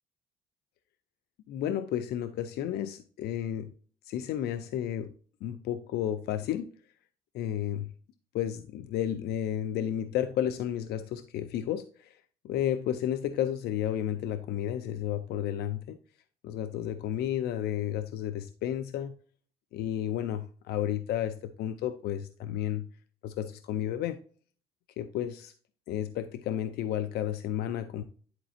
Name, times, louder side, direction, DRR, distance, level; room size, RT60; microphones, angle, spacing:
voice 1, 1.5-3.7 4.1-5.1 5.4-6.7 7.3-7.9 8.3-12.2 12.4-16.0 16.4-19.2 19.7-22.9 23.2-24.2 25.0-25.5 25.9-28.0, left 11 dB, 75° left, 11 dB, 0.6 m, -32 dB
10.5 x 4.1 x 2.8 m, 0.43 s
cardioid pair, 110°, 17 cm